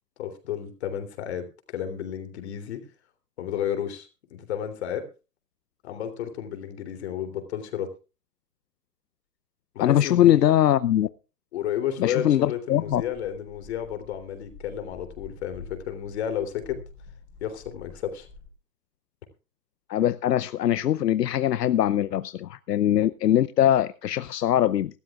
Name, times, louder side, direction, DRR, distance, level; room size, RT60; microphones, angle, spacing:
voice 1, 0.2-2.9 3.4-5.1 5.8-7.9 9.7-10.4 11.5-16.8 17.4-18.3, left 9 dB, 40° left, 3.3 m, -32 dB
voice 2, 9.8-11.1 12.0-13.0 19.9-25.0, left 11 dB, 80° left, 0.8 m, -22 dB
sound 1, 12.8-18.5, left 4 dB, 5° left, 5.3 m, -48 dB
23.0 x 13.0 x 2.4 m
hypercardioid pair, 160°, 48 cm